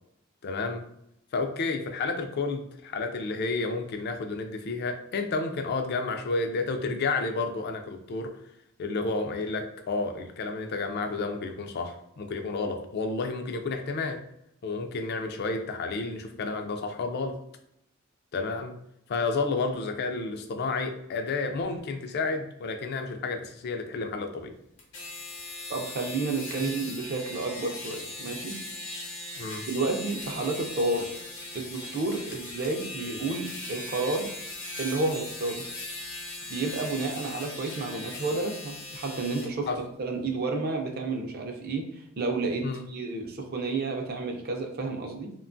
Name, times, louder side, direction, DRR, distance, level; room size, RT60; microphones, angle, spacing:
voice 1, 0.4-0.8 1.3-8.4 8.8-14.3 14.6-17.4 18.3-18.8 19.1-24.5 26.5-26.7 29.4-29.6 39.7-39.8 42.6-42.8, left 3 dB, 50° left, 6 dB, 0.3 m, -31 dB
sound 1, 24.8-39.5, left 2 dB, 75° left, 0.7 m, -39 dB
voice 2, 25.7-28.6 29.7-31.1 31.5-34.3 34.8-35.7 36.5-39.7 40.0-41.9 42.2-45.3, right 3 dB, 50° right, 3 dB, 0.4 m, -31 dB
2.8 x 2.2 x 2.5 m, 0.76 s
head